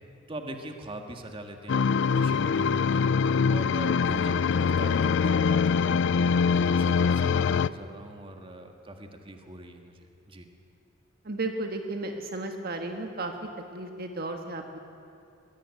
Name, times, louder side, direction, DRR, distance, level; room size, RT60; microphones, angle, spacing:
voice 1, 0.3-6.1 6.5-10.5, right 1 dB, 30° right, 4 dB, 1.8 m, -42 dB
sound 1, 1.7-7.7, left 5 dB, 65° left, 0.4 m, -23 dB
voice 2, 11.2-14.8, right 2 dB, 50° right, 4 dB, 1.6 m, -34 dB
23.5 x 17.5 x 8.4 m, 2.6 s
head